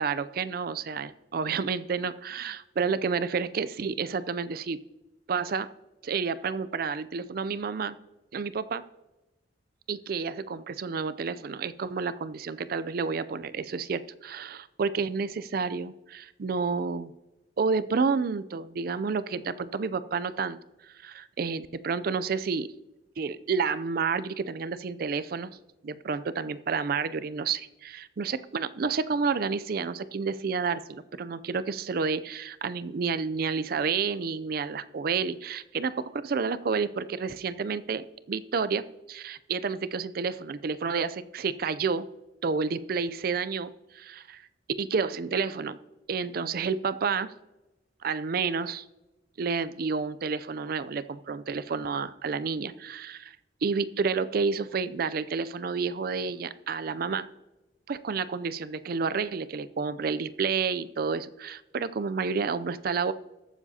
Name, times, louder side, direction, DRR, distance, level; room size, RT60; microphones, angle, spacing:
voice 1, 0.0-4.8 5.3-5.7 6.0-8.0 8.3-8.8 9.9-17.1 17.6-20.6 20.8-22.7 23.2-25.5 25.8-42.1 42.4-44.4 44.8-45.8 46.1-47.3 48.0-48.8 49.4-53.4 53.6-57.3 57.9-63.1, right 5 dB, 55° right, 15 dB, 0.4 m, -30 dB
21.5 x 7.2 x 2.8 m, 1.0 s
head